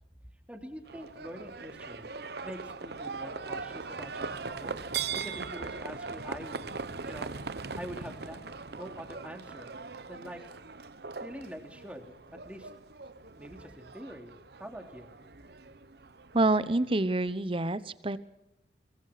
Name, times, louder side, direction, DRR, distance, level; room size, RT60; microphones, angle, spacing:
voice 1, 0.5-4.8 5.1-6.7 7.0-7.3 7.8-8.4 8.7-10.4 11.2-12.7 13.4-14.3 14.6-15.1, equal, 5° right, 4 dB, 3.0 m, -45 dB
Livestock farm animals working animals, 0.9-17.3, right 5 dB, 60° right, 1.0 m, -40 dB
voice 2, 16.3-18.2, right 2 dB, 30° right, 15 dB, 1.0 m, -27 dB
23.0 x 22.0 x 5.9 m, 0.89 s
head